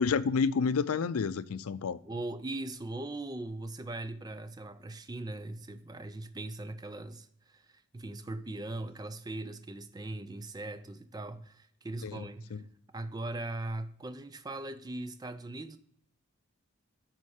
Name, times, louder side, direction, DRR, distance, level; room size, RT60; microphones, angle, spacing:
voice 1, 0.0-2.0 12.0-12.2 12.5-12.6, left 5 dB, 90° left, 0.4 m, -29 dB
voice 2, 2.1-12.6 12.9-15.8, right 2 dB, 20° right, 0.4 m, -40 dB
9.7 x 4.4 x 4.7 m
head